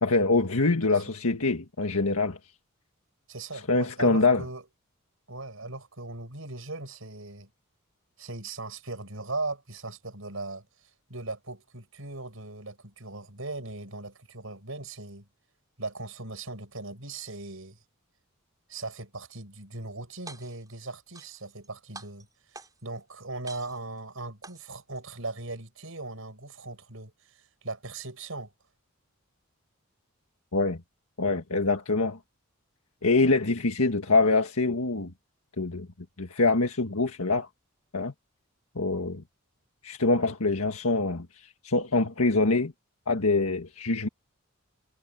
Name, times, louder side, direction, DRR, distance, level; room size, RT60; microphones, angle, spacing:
voice 1, 0.0-2.4 3.7-4.4 30.5-30.8 31.2-32.2 33.0-35.1 35.6-35.9 36.2-37.5 37.9-38.1 38.7-39.2 39.8-41.3 41.6-42.7 43.1-44.1, left 3 dB, 90° left, 1.7 m, -24 dB
voice 2, 3.3-4.6 5.3-7.5 8.2-10.7 11.1-15.3 15.8-17.8 18.7-28.5, right 2 dB, 70° right, 6.9 m, -39 dB
sound 1, 20.1-20.7 21.1-21.7 21.9-23.0 23.5-24.0 24.4-25.0, right 3 dB, 15° right, 6.1 m, -47 dB
head